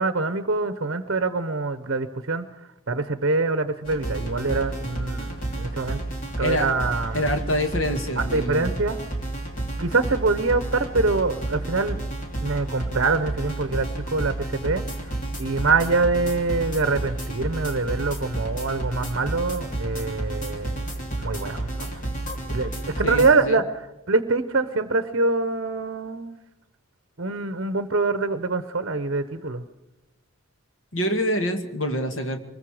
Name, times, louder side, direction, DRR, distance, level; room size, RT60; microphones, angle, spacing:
voice 1, 0.0-2.4 2.9-6.0 6.4-7.4 8.2-9.0 9.8-12.0 12.4-14.8 15.4-20.9 21.2-22.0 22.5-26.4 27.2-29.6, right 3 dB, 55° right, 11 dB, 0.9 m, -25 dB
sound 1, 3.8-23.3, right 1 dB, 35° left, 3.0 m, -31 dB
voice 2, 7.1-8.8 23.0-23.6 30.9-32.4, equal, 65° left, 6 dB, 2.0 m, -26 dB
24.0 x 21.5 x 5.0 m, 0.98 s
head